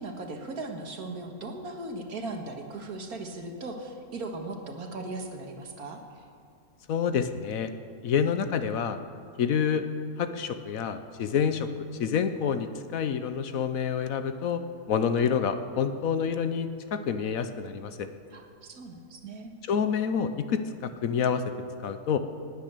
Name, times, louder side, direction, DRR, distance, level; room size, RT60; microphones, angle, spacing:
voice 1, 0.0-6.0 18.3-19.5, right 2 dB, 75° right, 4 dB, 2.0 m, -38 dB
voice 2, 6.9-7.7 8.0-9.0 9.4-9.9 10.2-11.7 12.0-14.6 14.9-18.1 19.7-21.4 21.8-22.2, left 7 dB, 70° left, 10 dB, 1.2 m, -28 dB
19.5 x 9.3 x 6.7 m, 2.3 s
omnidirectional pair, 1.6 m